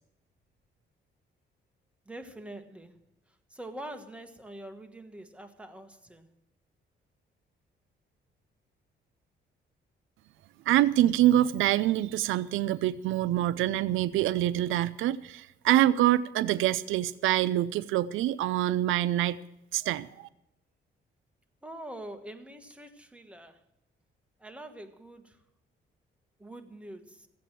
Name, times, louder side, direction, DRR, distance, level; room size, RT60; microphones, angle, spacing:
voice 1, 2.0-3.0 3.3-6.3 21.6-23.6 24.4-25.4 26.4-27.3, right 1 dB, 5° right, 1.5 m, -45 dB
voice 2, 10.7-19.4 19.7-20.3, right 13 dB, 85° right, 0.5 m, -25 dB
15.0 x 8.6 x 7.5 m
cardioid pair, 90°, 20 cm